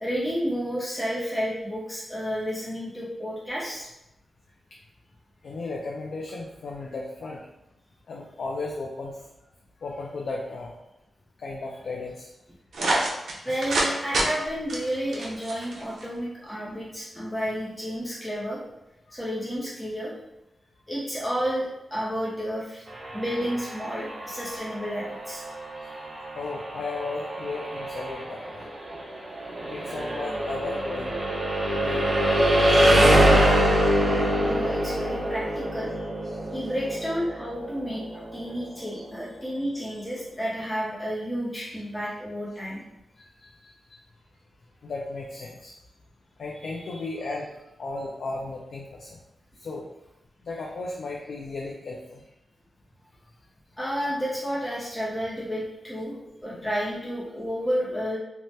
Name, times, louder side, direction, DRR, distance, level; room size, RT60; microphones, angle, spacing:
voice 1, 0.0-3.9 13.1-13.2 13.4-18.6 19.1-20.2 20.9-22.8 23.1-25.4 34.3-36.1 36.5-42.8 46.9-47.1 53.8-58.2, equal, 10° left, -7 dB, 0.5 m, -31 dB
voice 2, 5.4-7.4 8.1-9.2 9.8-10.7 11.4-12.3 25.7-25.9 26.3-28.6 29.7-31.2 31.7-32.5 32.8-33.4 33.7-33.9 36.2-36.4 38.9-39.0 41.7-41.8 43.2-44.0 44.8-45.7 46.4-47.5 47.8-49.2 49.6-49.9 50.4-52.2 56.5-56.7, left 3 dB, 70° left, -2 dB, 0.3 m, -35 dB
sound 1, 12.7-13.9 14.1-14.3 14.7-16.0, right 1 dB, 85° right, 0.5 m, -26 dB
sound 2, 22.9-38.7, equal, 45° right, 0.7 m, -25 dB
2.7 x 2.1 x 3.1 m, 0.91 s
wide cardioid pair, 125°, 0 cm